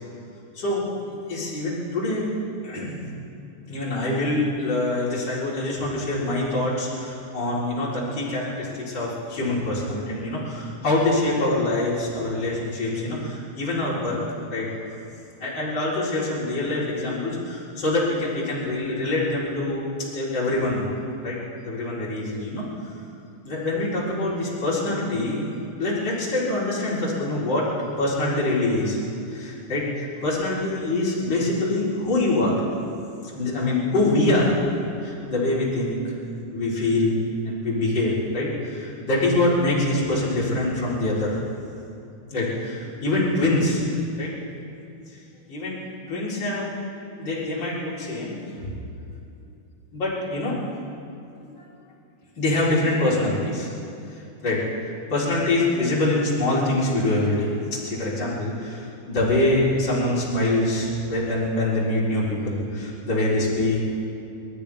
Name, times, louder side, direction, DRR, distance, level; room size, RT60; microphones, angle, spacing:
voice 1, 0.5-2.3 2.6-3.1 3.7-14.2 14.5-14.7 15.4-19.8 20.1-21.4 21.6-22.6 23.4-25.5 25.8-27.7 28.0-29.0 29.3-32.6 33.2-34.6 35.0-36.1 36.5-37.2 37.4-41.4 42.3-43.9 44.1-44.3 45.5-46.7 47.2-48.3 49.9-50.6 51.4-51.5 52.4-53.7 54.4-54.6 55.1-57.5 57.8-63.8, left 2 dB, 30° left, -8 dB, 4.5 m, -24 dB
29.0 x 14.0 x 3.5 m, 2.8 s
omnidirectional pair, 4.4 m